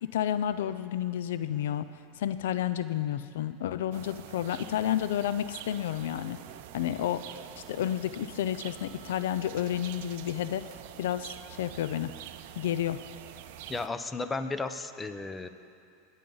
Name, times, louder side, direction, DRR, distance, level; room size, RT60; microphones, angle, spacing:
voice 1, 0.0-1.9 2.2-6.4 6.7-7.4 7.7-10.7 11.0-12.2 12.6-13.0, left 11 dB, 80° left, 13 dB, 0.4 m, -31 dB
sound 1, 3.9-13.9, right 12 dB, 70° right, 0.6 m, -46 dB
voice 2, 13.7-15.5, left 3 dB, 15° left, 10 dB, 0.7 m, -34 dB
22.0 x 9.3 x 3.9 m, 2.5 s
supercardioid pair, 115°, 0 cm